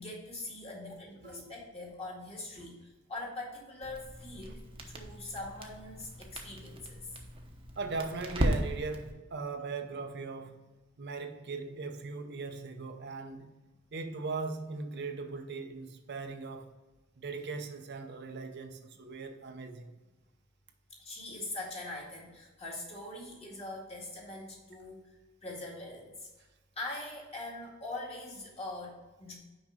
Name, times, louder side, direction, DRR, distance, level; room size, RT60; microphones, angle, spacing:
voice 1, 0.0-7.1 21.0-25.1 25.4-26.3 26.8-29.3, left 2 dB, 30° left, -3 dB, 2.1 m, -42 dB
voice 2, 1.2-1.5 2.6-2.8 7.8-10.7 11.0-13.5 13.9-16.7 17.2-19.9, right 4 dB, 55° right, 5 dB, 0.7 m, -39 dB
Crackle, 3.8-9.1, right 1 dB, 25° right, 0.9 m, -37 dB
6.2 x 5.3 x 5.0 m, 1.2 s
head